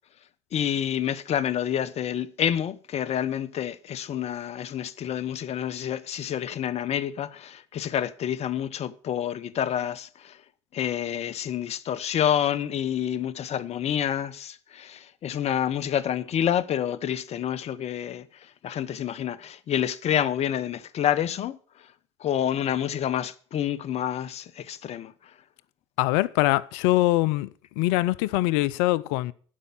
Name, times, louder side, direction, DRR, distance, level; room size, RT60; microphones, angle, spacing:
voice 1, 0.5-10.4 10.7-18.3 18.6-21.6 22.2-25.1, left 9 dB, 45° left, 0.8 m, -28 dB
voice 2, 26.0-27.5 27.8-29.3, left 18 dB, 70° left, 0.5 m, -23 dB
11.5 x 5.4 x 7.3 m
hypercardioid pair, 70°, 15 cm